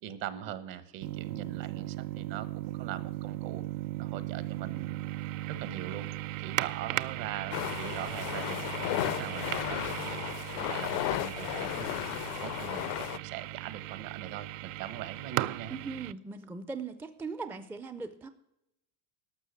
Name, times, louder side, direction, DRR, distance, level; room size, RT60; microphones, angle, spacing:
voice 1, 0.0-3.6 4.0-5.1 5.5-6.1 6.4-10.2 10.6-12.0 12.4-15.8, right 11 dB, 60° right, 14 dB, 1.2 m, -41 dB
sound 1, 1.0-16.1, right 17 dB, 90° right, 0.5 m, -37 dB
sound 2, 7.5-13.2, left 18 dB, 60° left, 0.5 m, -34 dB
voice 2, 15.7-18.3, right 4 dB, 5° right, 11 dB, 0.3 m, -39 dB
12.5 x 6.6 x 8.9 m, 0.84 s
cardioid pair, 150°, 38 cm